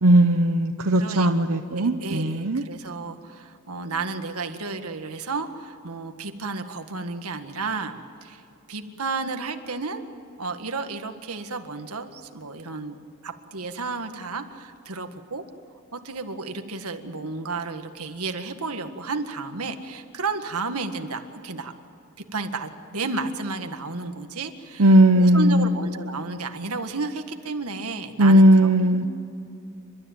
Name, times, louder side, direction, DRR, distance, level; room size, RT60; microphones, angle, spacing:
voice 1, 0.0-2.6 24.8-25.7 28.2-29.1, right 1 dB, 70° right, 5 dB, 0.9 m, -17 dB
voice 2, 1.7-8.4 8.7-10.0 10.4-13.0 13.2-15.4 15.9-21.7 22.2-29.1, right 3 dB, 85° right, 7 dB, 1.8 m, -32 dB
29.5 x 13.0 x 9.1 m, 2.8 s
head